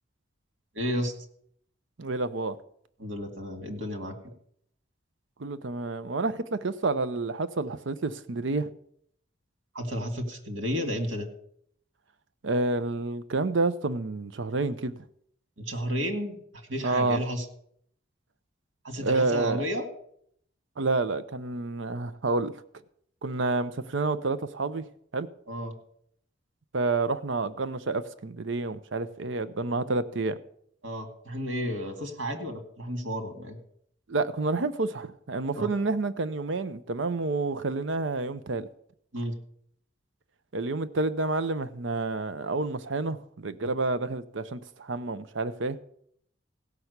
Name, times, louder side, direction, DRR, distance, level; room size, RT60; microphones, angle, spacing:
voice 1, 0.7-1.2 3.0-4.2 9.7-11.3 15.6-17.4 18.8-19.9 25.5-25.7 30.8-33.6 35.6-35.7 39.1-39.3, equal, 85° right, 2.3 m, -32 dB
voice 2, 2.0-2.6 5.4-8.7 12.4-15.0 16.8-17.2 19.0-19.6 20.8-22.5 23.2-24.8 25.1-25.3 26.7-30.4 34.1-38.7 40.5-45.8, right 3 dB, 70° right, 0.7 m, -29 dB
16.0 x 5.9 x 8.1 m
head